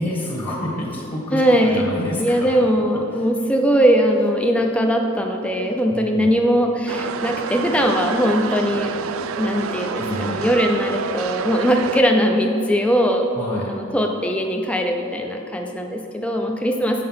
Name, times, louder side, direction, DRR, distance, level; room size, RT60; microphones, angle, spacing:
voice 1, 0.0-2.7 3.1-3.3 5.9-6.3 10.0-10.5 13.3-13.7, left 1 dB, 25° left, -3 dB, 1.2 m, -28 dB
voice 2, 1.3-1.8 2.2-8.9 9.4-13.3 13.7-17.0, equal, 5° left, 2 dB, 0.4 m, -20 dB
sound 1, 6.9-12.0, right 6 dB, 75° right, 0.4 m, -28 dB
7.6 x 5.5 x 5.6 m, 2.8 s
head